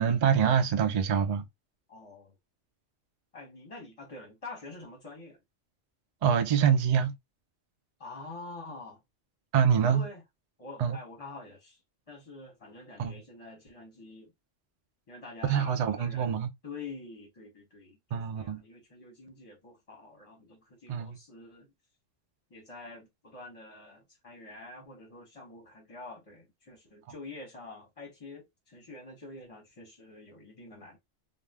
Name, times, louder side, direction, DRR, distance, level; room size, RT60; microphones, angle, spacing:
voice 1, 0.0-1.4 6.2-7.1 9.5-10.0 10.8-11.0 13.0-13.2 15.5-16.5 18.1-18.6 20.9-21.2, right 8 dB, 45° right, 0.5 m, -25 dB
voice 2, 1.9-2.3 3.3-5.4 8.0-9.0 9.8-10.2 10.6-11.8 12.1-14.3 15.1-16.4 16.6-21.7 22.5-31.0, left 3 dB, 30° left, 0.9 m, -46 dB
2.5 x 2.2 x 3.3 m
omnidirectional pair, 1.3 m